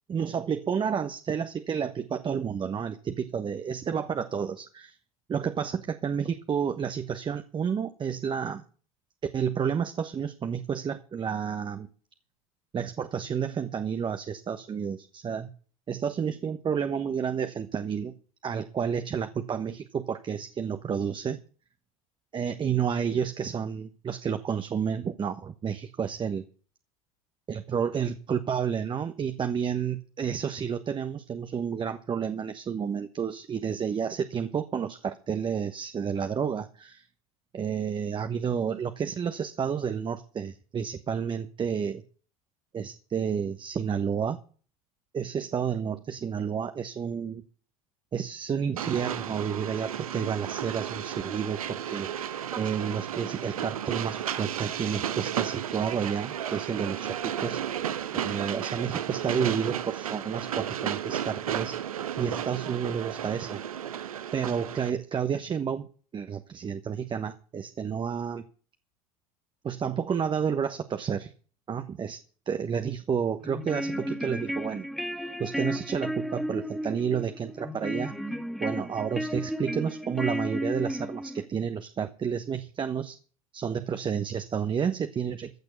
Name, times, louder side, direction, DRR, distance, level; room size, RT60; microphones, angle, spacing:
voice 1, 0.1-5.0 5.3-8.6 9.3-11.9 12.7-15.5 15.9-18.1 18.4-21.4 22.3-26.4 27.5-37.0 37.5-42.0 42.7-44.4 45.1-47.4 48.1-57.6 58.2-63.6 64.3-65.9 66.1-68.5 69.6-71.3 71.7-72.2 72.5-75.1 75.4-78.1 78.6-83.2 83.5-85.5, right 7 dB, 30° right, 8 dB, 1.1 m, -30 dB
Train, 48.8-64.9, right 10 dB, 85° right, 1.0 m, -33 dB
sound 1, 73.4-81.5, equal, ahead, 1.5 m, -33 dB
15.0 x 6.8 x 8.2 m, 0.41 s
hypercardioid pair, 85°, 18 cm